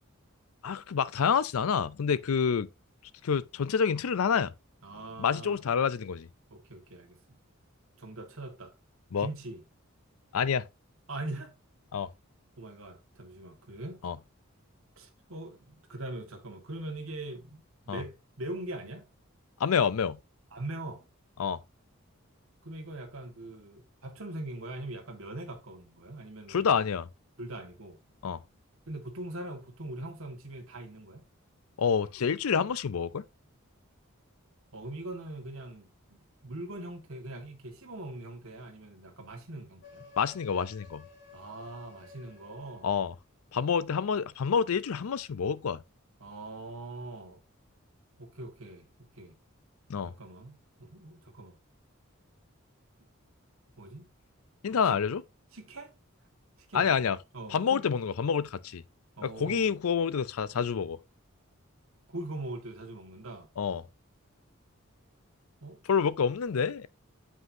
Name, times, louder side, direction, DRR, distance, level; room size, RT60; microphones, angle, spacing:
voice 1, 0.6-2.7 3.2-4.5 5.2-6.3 9.1-9.3 10.3-10.6 11.9-12.1 14.0-14.2 17.9-18.0 19.6-20.2 21.4-21.6 26.5-27.1 28.2-28.4 31.8-33.2 40.2-41.0 42.8-43.1 43.5-45.8 49.9-50.1 54.6-55.2 56.7-57.2 57.5-58.8 59.2-61.0 63.6-63.8 65.9-66.9, left 6 dB, 90° left, 0.5 m, -28 dB
voice 2, 4.8-5.6 6.5-7.2 8.0-8.7 9.2-9.6 11.1-11.5 12.6-14.1 15.0-19.1 20.5-21.0 22.6-26.8 27.4-28.0 28.9-31.2 34.7-35.9 36.4-40.1 41.3-42.9 46.2-47.4 48.2-48.9 49.2-49.3 50.1-51.5 53.8-54.1 54.8-55.0 55.5-55.9 56.7-57.1 57.3-57.8 59.2-59.8 62.1-63.5 65.6-65.8, right 2 dB, 75° right, 1.7 m, -41 dB
sound 1, 39.8-43.2, left 5 dB, 55° left, 1.7 m, -54 dB
7.7 x 5.4 x 2.7 m
head